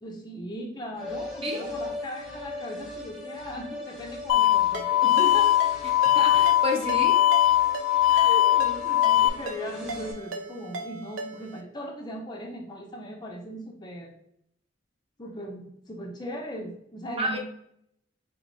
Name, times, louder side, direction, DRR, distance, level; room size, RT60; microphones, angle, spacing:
voice 1, 0.0-5.6 8.1-14.1 15.2-17.4, equal, 20° left, 1 dB, 0.5 m, -38 dB
sound 1, 0.9-10.1, left 2 dB, ahead, 0.8 m, -39 dB
sound 2, 4.3-9.3, left 13 dB, 90° left, 0.4 m, -21 dB
Ringtone, 4.7-11.6, right 2 dB, 75° right, 0.5 m, -39 dB
voice 2, 6.1-7.2 17.2-17.4, equal, 30° right, 2 dB, 0.6 m, -30 dB
4.1 x 3.0 x 2.6 m, 0.73 s
head